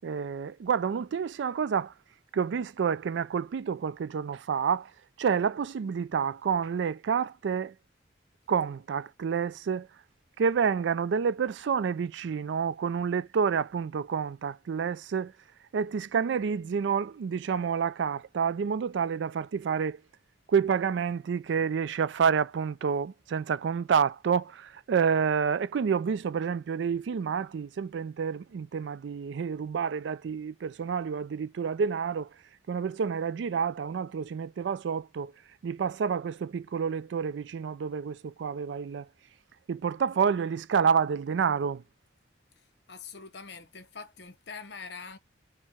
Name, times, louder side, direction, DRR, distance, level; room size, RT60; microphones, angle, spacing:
voice 1, 0.0-1.9 2.3-4.9 5.2-7.7 8.5-9.9 10.4-15.3 15.7-20.0 20.5-32.3 32.7-35.3 35.6-39.1 39.7-41.8, right 6 dB, 75° right, 0.3 m, -29 dB
voice 2, 42.9-45.2, left 5 dB, 65° left, 0.8 m, -43 dB
4.5 x 2.1 x 4.3 m
head